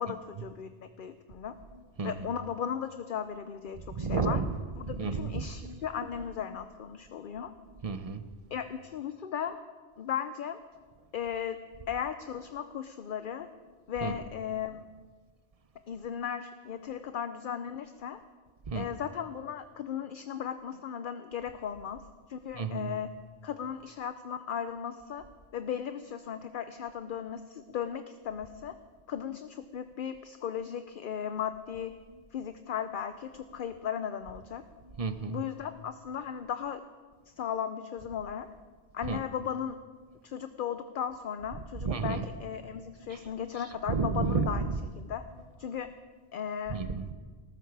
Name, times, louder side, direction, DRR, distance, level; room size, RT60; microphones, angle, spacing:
voice 1, 0.0-1.5 2.0-4.4 4.8-7.5 8.5-9.6 10.0-10.6 11.1-13.5 13.9-14.9 15.9-18.2 18.7-22.0 22.3-23.1 23.4-25.2 25.5-28.8 29.1-31.9 32.3-34.6 35.3-36.8 37.3-38.5 38.9-39.8 40.2-44.6 44.9-45.2 45.6-45.9 46.3-46.8, left 8 dB, 55° left, 10 dB, 0.7 m, -36 dB
voice 2, 4.0-4.5 4.9-5.8 7.8-8.2 14.0-14.1 18.7-18.8 22.6-22.9 35.0-35.4 39.1-39.2 41.8-42.2 43.9-44.7 46.7-47.1, right 4 dB, 35° right, 10 dB, 0.7 m, -31 dB
19.0 x 13.5 x 4.7 m, 1.5 s
omnidirectional pair, 1.2 m